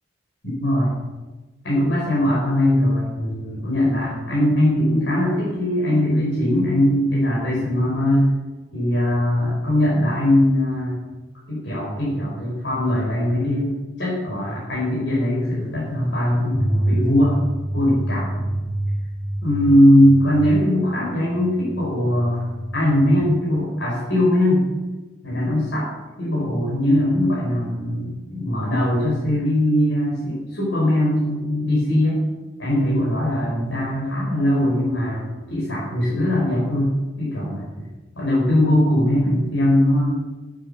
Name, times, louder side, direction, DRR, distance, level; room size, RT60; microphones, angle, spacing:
voice 1, 0.6-1.0 1.6-8.3 8.7-11.0 11.5-13.7 14.0-17.4 17.7-18.5 19.4-22.5 22.7-24.6 25.2-25.9 26.2-32.2 32.6-37.6 38.1-40.1, left 1 dB, 90° left, -6 dB, 5.0 m, -20 dB
sound 1, 16.5-23.3, right 1 dB, 5° left, 2.4 m, -28 dB
11.0 x 10.0 x 7.0 m, 1.2 s
head